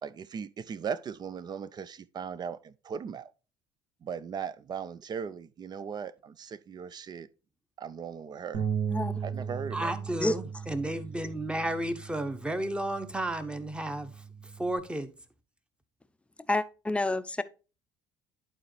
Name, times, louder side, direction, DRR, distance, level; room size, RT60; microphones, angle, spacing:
voice 1, 0.0-3.3 4.0-7.3 7.8-8.6 9.2-9.9, right 7 dB, 35° right, 0.5 m, -38 dB
Bass guitar, 8.5-14.8, right 7 dB, 65° right, 1.7 m, -37 dB
voice 2, 9.7-15.1, right 1 dB, 10° right, 1.0 m, -33 dB
voice 3, 16.5-17.4, left 2 dB, 10° left, 0.6 m, -28 dB
11.0 x 4.3 x 3.2 m
hypercardioid pair, 60°, 12 cm